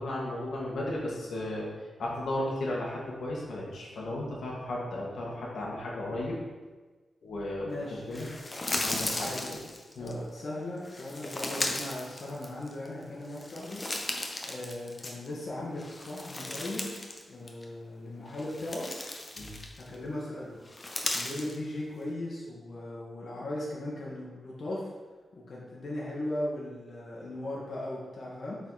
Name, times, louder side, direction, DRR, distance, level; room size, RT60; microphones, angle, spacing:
voice 1, 0.0-1.7 2.0-6.4 7.2-8.3 8.8-9.6 9.9-10.2 19.4-19.5, left 1 dB, 75° left, -4 dB, 1.6 m, -35 dB
voice 2, 7.7-8.1 9.1-9.5 10.0-14.1 14.4-16.9 17.3-18.9 19.8-24.8 25.3-28.6, left 1 dB, 55° left, -6 dB, 1.4 m, -38 dB
sound 1, 8.1-10.1 10.8-12.9 13.2-15.4 15.8-17.2 17.5-17.6 18.3-19.9 20.6-21.6, left 2 dB, 30° left, 0.8 m, -36 dB
7.5 x 4.1 x 4.1 m, 1.3 s
cardioid pair, 95°, 0 cm